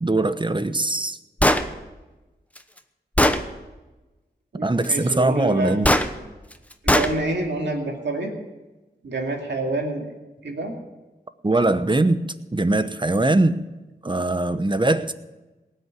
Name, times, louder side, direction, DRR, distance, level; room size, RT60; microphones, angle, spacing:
voice 1, 0.0-1.2 4.6-5.9 11.4-12.2 12.5-13.6 14.0-15.1, right 2 dB, 25° right, 12 dB, 0.9 m, -21 dB
Gunshot gunfire, 1.4-1.7 2.6-2.7 3.2-3.4 5.8-6.1 6.9-7.1, left 1 dB, 10° left, 1.1 m, -17 dB
voice 2, 4.5-5.8 6.8-8.3 9.0-10.0 10.4-10.7, right 2 dB, 90° right, 1 dB, 2.5 m, -27 dB
18.5 x 6.7 x 9.2 m, 1.1 s
cardioid pair, 50°, 18 cm